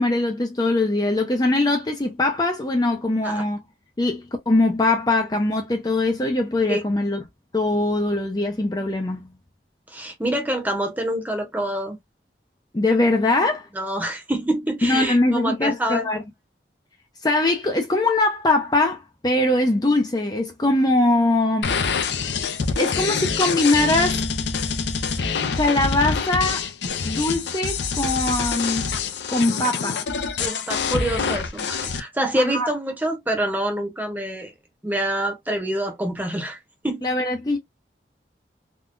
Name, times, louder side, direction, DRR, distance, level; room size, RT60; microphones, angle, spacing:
voice 1, 0.0-3.6 4.0-7.2 7.5-9.3 12.7-13.7 14.8-16.2 17.2-22.2 22.8-24.2 25.6-26.7 27.0-29.0 29.3-30.0 32.4-32.7 37.0-37.6, left 2 dB, 20° left, 0.5 m, -22 dB
voice 2, 9.9-12.0 13.7-16.1 30.4-34.5 34.8-37.1, right 1 dB, 10° right, 0.9 m, -26 dB
sound 1, 21.6-32.0, left 5 dB, 80° left, 0.5 m, -26 dB
3.6 x 2.3 x 2.4 m
head